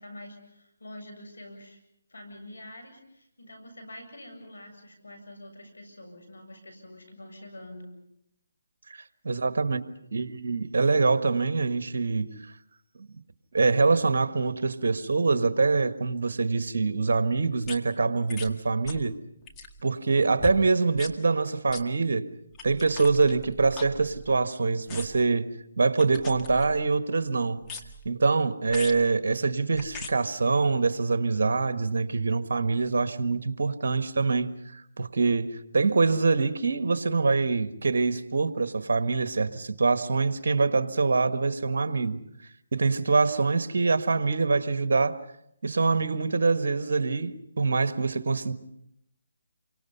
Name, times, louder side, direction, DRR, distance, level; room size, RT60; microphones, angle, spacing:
voice 1, 0.0-1.8 2.1-8.0, left 1 dB, 85° left, 7.9 m, -46 dB
voice 2, 8.9-9.8 10.1-12.3 13.0-13.1 13.5-19.1 19.8-22.2 22.6-25.5 25.8-27.6 28.0-42.2 42.7-45.2 45.6-48.5, right 4 dB, 65° right, 1.6 m, -25 dB
sound 1, 17.6-17.8 18.3-18.5 18.9-19.1 19.4-19.8 20.4-20.6 21.0-21.2 21.7-21.8 22.5-24.5 24.9-25.3 26.0-26.9 27.6-28.1 28.7-29.0 29.7-30.1 30.9-31.0, left 3 dB, 15° left, 2.0 m, -41 dB
29.0 x 24.5 x 5.5 m
figure-of-eight pair, 150°, 0 cm